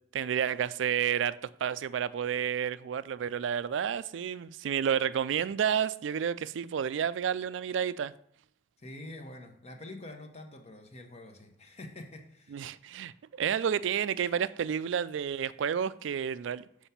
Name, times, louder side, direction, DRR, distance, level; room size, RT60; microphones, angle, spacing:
voice 1, 0.1-8.1 12.5-16.6, right 8 dB, 75° right, 0.3 m, -30 dB
voice 2, 8.8-12.6, left 1 dB, 35° left, 1.0 m, -46 dB
7.1 x 4.7 x 5.6 m
head